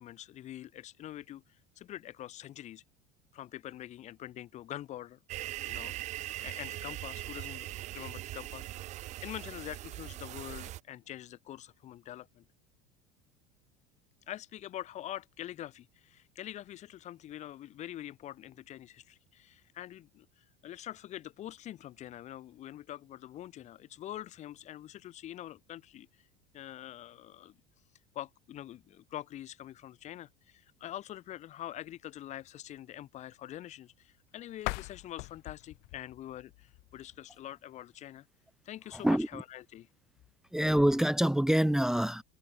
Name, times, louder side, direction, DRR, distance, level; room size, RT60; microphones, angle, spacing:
voice 1, 0.0-1.4 1.8-2.8 3.3-5.2 5.6-5.9 6.4-8.7 9.2-12.4 14.3-26.1 26.5-27.5 28.1-38.2 38.6-39.9, left 12 dB, 40° left, 1.1 m, -45 dB
sound 1, 5.3-10.8, right 15 dB, 45° right, 0.5 m, -41 dB
sound 2, 34.5-37.4, left 30 dB, 65° left, 0.5 m, -42 dB
voice 2, 38.9-39.4 40.5-42.2, right 1 dB, 5° right, 0.7 m, -26 dB
supercardioid pair, 120°, 17 cm